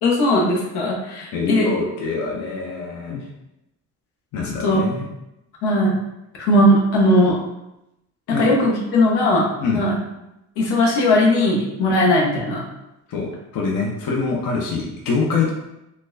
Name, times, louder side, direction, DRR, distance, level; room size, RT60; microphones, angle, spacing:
voice 1, 0.0-1.7 4.6-4.8 5.6-6.0 6.4-7.4 8.3-9.5 9.7-10.0 10.6-12.6, left 1 dB, 85° left, -2 dB, 1.0 m, -18 dB
voice 2, 1.3-3.3 4.3-5.1 8.3-8.5 9.6-9.8 11.9-12.0 13.1-15.5, left 4 dB, 60° left, -1 dB, 0.7 m, -24 dB
4.2 x 2.2 x 2.6 m, 0.89 s
cardioid pair, 90°, 38 cm